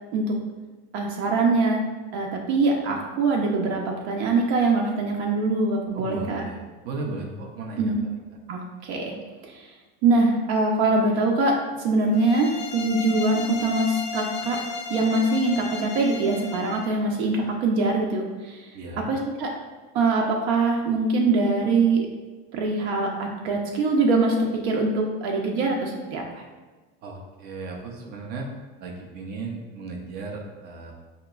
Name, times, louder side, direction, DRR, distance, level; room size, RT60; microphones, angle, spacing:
voice 1, 0.9-1.8 2.1-6.4 7.8-8.0 8.5-9.1 9.5-9.6 10.0-14.6 14.9-18.6 19.1-19.5 19.9-22.1 22.5-26.4, right 3 dB, 70° right, 0 dB, 0.6 m, -23 dB
voice 2, 5.9-6.6 6.8-7.9 18.7-19.1 27.0-28.5 28.8-30.9, right 3 dB, 30° right, 1 dB, 0.4 m, -35 dB
sound 1, 12.1-16.9, left 4 dB, 65° left, 0.5 m, -35 dB
4.9 x 2.8 x 2.3 m, 1.3 s
cardioid pair, 165°, 34 cm